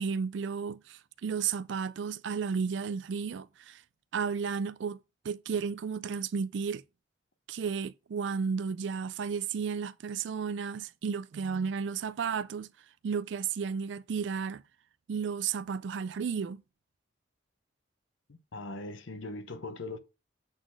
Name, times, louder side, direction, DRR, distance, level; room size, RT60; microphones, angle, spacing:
voice 1, 0.0-3.8 4.1-5.0 5.2-6.8 7.5-12.7 13.0-14.6 15.1-16.6, right 6 dB, 65° right, 0.4 m, -33 dB
voice 2, 18.3-20.0, left 2 dB, 80° left, 0.9 m, -40 dB
8.0 x 4.1 x 6.1 m
head